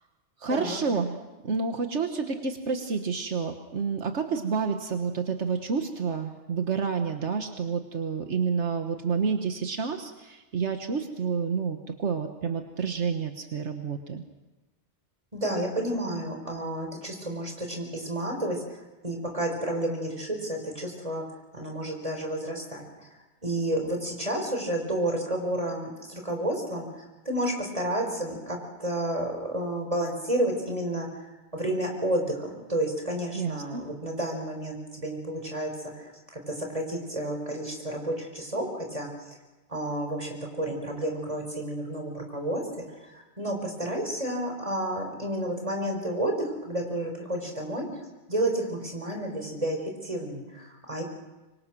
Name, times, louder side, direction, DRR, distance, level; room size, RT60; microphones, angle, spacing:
voice 1, 0.4-1.2 1.4-14.2 33.3-33.8, right 5 dB, 85° right, 6 dB, 1.7 m, -29 dB
voice 2, 15.3-21.2 21.5-23.1 23.4-39.3 39.7-48.0 48.3-51.0, right 1 dB, 30° right, 3 dB, 5.1 m, -31 dB
26.0 x 23.5 x 6.2 m, 1.1 s
omnidirectional pair, 1.2 m